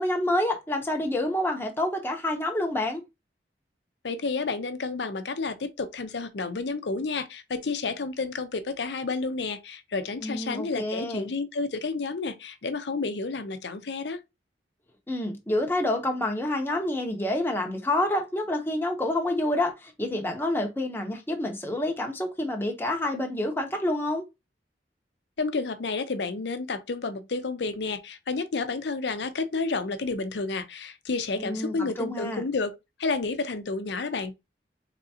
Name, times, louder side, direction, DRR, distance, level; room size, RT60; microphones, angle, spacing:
voice 1, 0.0-3.0 10.2-11.3 15.1-24.2 31.4-32.4, left 1 dB, 15° left, 0.8 m, -28 dB
voice 2, 4.0-14.2 25.4-32.7 33.0-34.3, left 3 dB, 75° left, 0.6 m, -30 dB
3.8 x 3.4 x 2.8 m
head